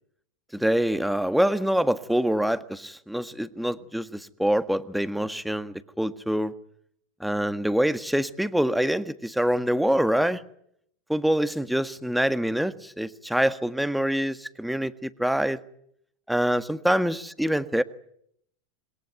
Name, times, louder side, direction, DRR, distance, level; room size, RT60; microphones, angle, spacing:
voice 1, 0.5-6.5 7.2-10.4 11.1-15.6 16.3-17.8, equal, ahead, 11 dB, 1.6 m, -25 dB
27.0 x 22.0 x 9.2 m, 0.71 s
figure-of-eight pair, 85°, 0 cm